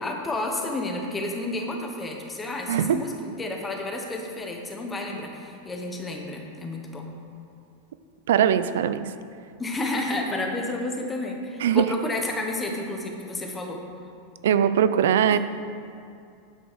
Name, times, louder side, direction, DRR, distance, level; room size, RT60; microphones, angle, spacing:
voice 1, 0.0-7.0 9.6-13.8 15.3-15.4, left 2 dB, 15° left, 2 dB, 1.2 m, -31 dB
voice 2, 2.7-3.0 8.3-9.1 11.6-11.9 14.4-15.4, right 9 dB, 85° right, 13 dB, 0.5 m, -21 dB
9.9 x 5.2 x 6.2 m, 2.4 s
supercardioid pair, 145°, 0 cm